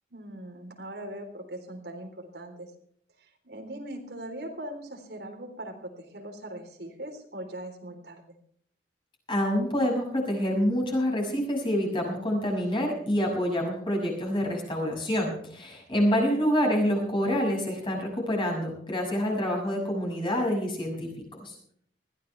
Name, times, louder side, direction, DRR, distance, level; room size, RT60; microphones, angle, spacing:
voice 1, 0.1-2.7 3.2-8.4 16.1-16.3, right 1 dB, 70° right, 3 dB, 3.7 m, -40 dB
voice 2, 9.3-21.1 21.4-21.5, equal, 30° left, 0 dB, 6.2 m, -27 dB
21.0 x 15.5 x 3.4 m, 0.64 s
head